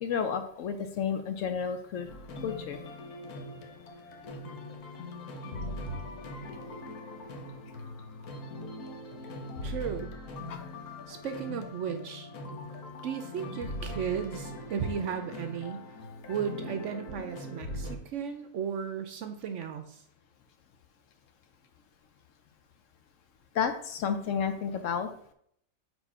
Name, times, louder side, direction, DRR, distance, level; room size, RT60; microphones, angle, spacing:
voice 1, 0.0-2.1 2.4-2.8 10.5-10.6 23.5-25.1, left 7 dB, 65° left, 8 dB, 0.9 m, -31 dB
sound 1, 2.1-18.0, left 1 dB, 85° left, 1.4 m, -41 dB
voice 2, 9.6-10.1 11.1-12.3 13.0-15.8 16.3-20.0, right 7 dB, 65° right, 8 dB, 0.8 m, -35 dB
4.5 x 4.1 x 5.4 m, 0.67 s
omnidirectional pair, 1.6 m